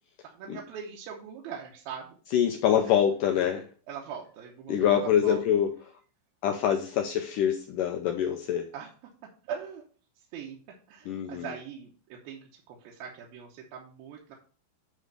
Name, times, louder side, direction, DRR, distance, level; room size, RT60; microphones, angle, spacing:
voice 1, 0.2-2.2 2.8-3.0 3.9-5.4 8.7-8.9 9.4-9.8 10.3-10.6 10.9-14.4, right 7 dB, 70° right, -2 dB, 2.6 m, -41 dB
voice 2, 2.3-3.7 4.7-5.7 6.4-8.7 11.1-11.5, left 9 dB, 90° left, 4 dB, 1.8 m, -25 dB
9.3 x 3.2 x 6.5 m, 0.41 s
omnidirectional pair, 4.6 m